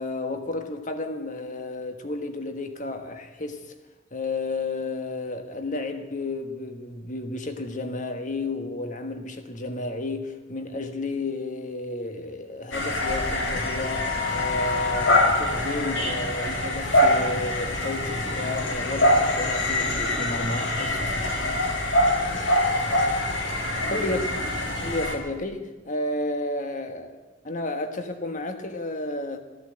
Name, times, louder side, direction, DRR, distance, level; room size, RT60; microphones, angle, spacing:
voice 1, 0.0-3.7 4.1-21.2 23.9-24.2 24.8-29.4, left 2 dB, 40° left, 1.4 m, -32 dB
sound 1, 12.7-25.1, left 1 dB, 75° left, 2.2 m, -24 dB
14.5 x 11.0 x 7.6 m
head